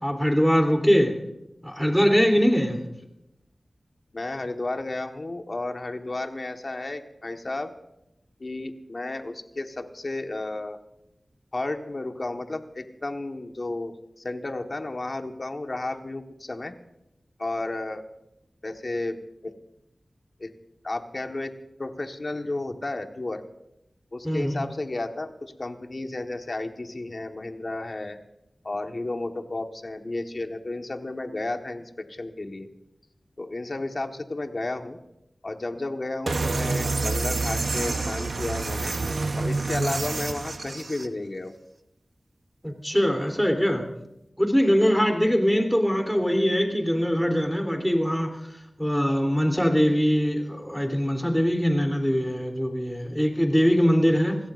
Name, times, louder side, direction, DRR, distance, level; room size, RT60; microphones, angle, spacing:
voice 1, 0.0-1.2 1.6-2.8 24.2-24.6 42.6-43.9 44.4-54.4, equal, 5° left, 3 dB, 3.4 m, -22 dB
voice 2, 4.1-7.7 8.4-10.8 11.5-16.7 17.4-18.0 18.6-19.2 19.4-19.5 20.4-20.5 20.8-21.5 21.8-23.4 24.1-28.2 28.6-32.7 33.4-35.0 35.4-38.9 39.4-41.5 45.0-45.1, left 2 dB, 50° left, 5 dB, 1.4 m, -32 dB
sound 1, 36.3-41.1, right 3 dB, 75° right, 0.9 m, -28 dB
28.0 x 17.5 x 2.6 m, 0.85 s
cardioid pair, 45°, 0 cm